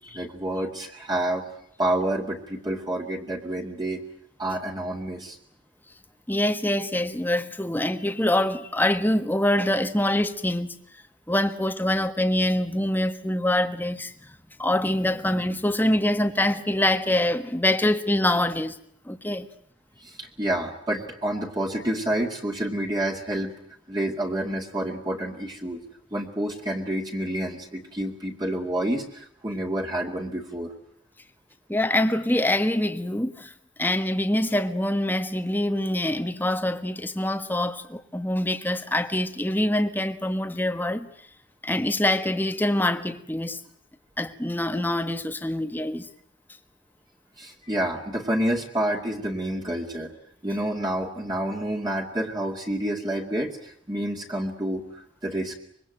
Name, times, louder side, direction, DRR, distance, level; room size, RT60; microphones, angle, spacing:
voice 1, 0.1-1.4 1.8-4.0 4.4-5.4 20.0-23.5 23.9-25.8 26.1-30.7 47.4-50.1 50.4-55.6, right 1 dB, 20° right, 2.4 m, -28 dB
voice 2, 6.3-10.8 11.3-14.3 14.6-18.8 19.0-19.5 31.7-33.5 33.8-41.1 41.6-43.6 44.2-46.1, left 1 dB, 10° left, 1.4 m, -25 dB
25.5 x 23.0 x 9.1 m
head